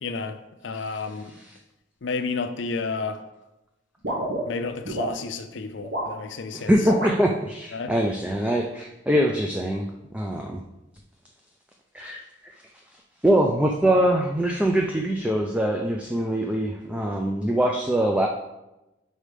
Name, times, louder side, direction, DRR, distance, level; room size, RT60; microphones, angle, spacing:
voice 1, 0.0-1.3 2.0-3.2 4.5-6.7 7.7-7.9, left 4 dB, 70° left, 9 dB, 0.5 m, -31 dB
sound 1, 4.0-5.1 5.8-6.2 6.8-7.2, right 1 dB, 60° right, 1.6 m, -28 dB
voice 2, 6.5-9.9 10.1-10.6 11.9-12.2 13.2-18.3, right 1 dB, 5° right, 1 dB, 0.4 m, -23 dB
4.9 x 4.3 x 5.0 m, 0.95 s
head